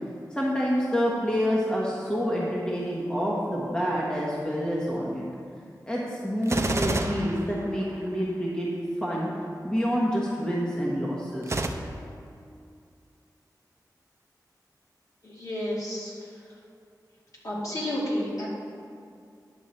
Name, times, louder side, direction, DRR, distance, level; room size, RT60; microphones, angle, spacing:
voice 1, 0.3-5.2 5.9-8.7 9.0-9.3 9.6-12.4, equal, 10° left, -5 dB, 1.3 m, -28 dB
Gunshot gunfire, 6.4-8.2 11.4-11.7, right 2 dB, 40° right, 0.6 m, -29 dB
voice 2, 15.2-16.1 17.4-18.5, left 1 dB, 55° left, -6 dB, 2.4 m, -31 dB
10.0 x 6.5 x 4.3 m, 2.4 s
wide cardioid pair, 85°, 7 cm